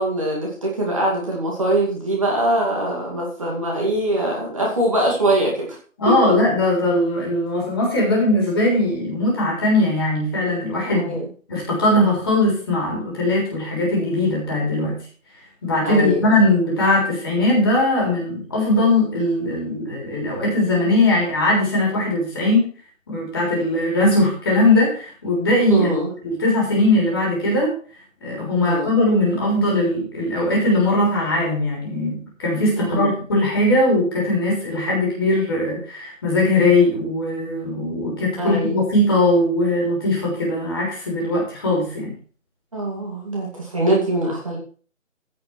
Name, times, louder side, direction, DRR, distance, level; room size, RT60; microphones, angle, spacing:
voice 1, 0.0-5.8 6.2-6.3 10.8-11.2 15.8-16.5 25.7-26.1 28.6-29.0 32.8-33.1 38.4-38.9 42.7-44.6, right 1 dB, 25° right, -3 dB, 2.3 m, -23 dB
voice 2, 6.0-11.2 11.5-15.0 15.6-22.7 23.1-25.9 26.2-27.7 28.2-42.1, left 1 dB, 20° left, -3 dB, 3.5 m, -20 dB
15.5 x 5.9 x 4.5 m, 0.42 s
figure-of-eight pair, 170°, 40 cm